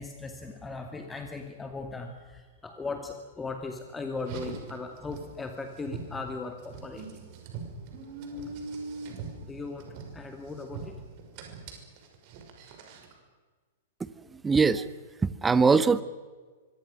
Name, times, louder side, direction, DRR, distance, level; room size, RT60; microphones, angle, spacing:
voice 1, 0.0-7.2 9.4-10.9, left 3 dB, 10° left, 5 dB, 2.4 m, -38 dB
Car, 4.2-13.2, right 4 dB, 45° right, 5.9 m, -42 dB
voice 2, 14.4-14.8 15.2-16.0, right 4 dB, 15° right, 14 dB, 1.3 m, -21 dB
25.5 x 24.5 x 6.6 m, 1.4 s
figure-of-eight pair, 105°, 0 cm